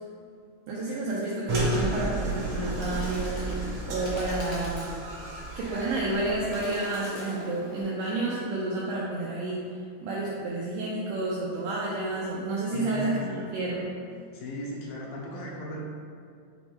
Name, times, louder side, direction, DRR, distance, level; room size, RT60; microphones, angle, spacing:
voice 1, 0.7-3.5 3.9-5.0 5.6-9.7 10.0-13.9, right 2 dB, 90° right, -5 dB, 1.8 m, -30 dB
sound 1, 1.5-6.6, right 2 dB, 70° right, 1.4 m, -32 dB
Bird, 2.2-7.8, left 1 dB, 55° left, 1.1 m, -44 dB
voice 2, 12.7-13.2 14.3-15.8, left 1 dB, 80° left, -2 dB, 2.4 m, -37 dB
9.1 x 3.1 x 3.3 m, 2.3 s
omnidirectional pair, 4.3 m